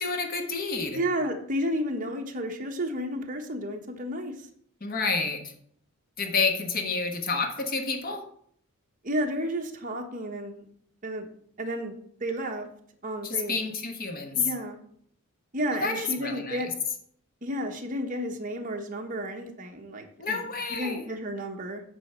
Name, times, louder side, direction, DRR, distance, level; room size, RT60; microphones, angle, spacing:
voice 1, 0.0-1.0 4.8-5.5 6.2-8.2 13.2-14.5 15.7-16.6 20.2-21.0, left 4 dB, 40° left, 5 dB, 1.3 m, -29 dB
voice 2, 0.9-4.5 9.0-10.7 11.0-11.3 11.6-12.7 13.0-13.6 14.3-14.8 15.5-16.7 17.4-20.4 20.7-21.8, equal, 35° right, 2 dB, 1.2 m, -32 dB
9.3 x 4.1 x 6.7 m, 0.64 s
head